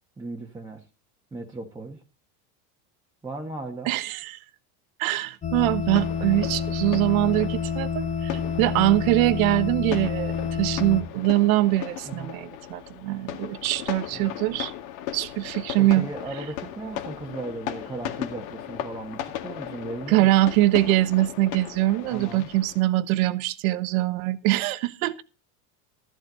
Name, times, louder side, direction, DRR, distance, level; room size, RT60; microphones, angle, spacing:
voice 1, 0.2-0.8 1.3-2.0 3.2-3.9 12.0-12.3 14.1-14.4 15.8-20.3 22.1-22.5, right 2 dB, 10° right, 1.4 m, -36 dB
voice 2, 3.9-4.4 5.0-14.7 15.1-16.0 20.1-25.2, right 17 dB, 70° right, 1.3 m, -23 dB
sound 1, 5.4-11.0, left 6 dB, 15° left, 1.4 m, -28 dB
sound 2, 5.5-22.8, left 11 dB, 70° left, 2.2 m, -37 dB
14.0 x 11.5 x 4.0 m
supercardioid pair, 155°, 43 cm